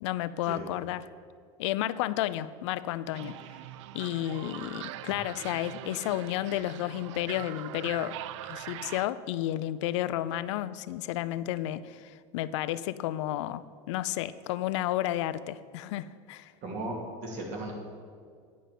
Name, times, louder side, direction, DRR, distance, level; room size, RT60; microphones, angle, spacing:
voice 1, 0.0-1.1 1.6-3.4 3.9-8.2 8.5-16.5, left 14 dB, 80° left, 15 dB, 0.4 m, -32 dB
sound 1, 3.1-9.1, right 13 dB, 80° right, 0.4 m, -42 dB
voice 2, 16.6-17.7, right 1 dB, 55° right, 0 dB, 2.7 m, -36 dB
10.0 x 5.3 x 7.7 m, 2.1 s
supercardioid pair, 110°, 15 cm